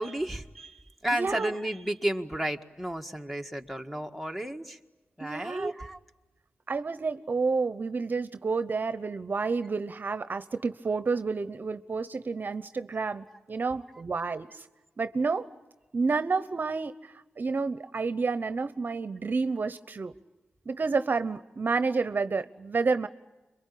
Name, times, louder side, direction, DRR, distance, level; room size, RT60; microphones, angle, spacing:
voice 1, 0.0-4.8 5.2-6.0 13.3-13.4, right 1 dB, ahead, 6 dB, 1.8 m, -33 dB
voice 2, 1.2-1.5 5.2-5.7 6.7-14.6 15.0-15.5 15.9-20.1 20.7-23.1, right 4 dB, 50° right, 12 dB, 0.9 m, -30 dB
27.0 x 23.5 x 8.6 m, 1.1 s
cardioid pair, 60°, 4 cm